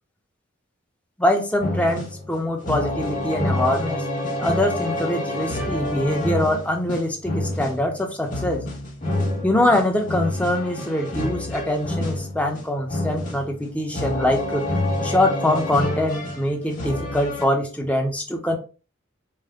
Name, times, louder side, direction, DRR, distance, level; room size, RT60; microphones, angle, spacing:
voice 1, 1.2-4.0 4.4-8.7 9.4-14.7 15.0-18.6, left 1 dB, 5° left, 1 dB, 0.7 m, -23 dB
sound 1, 1.6-17.4, left 1 dB, 40° left, 1.6 m, -28 dB
5.5 x 2.1 x 3.5 m, 0.34 s
head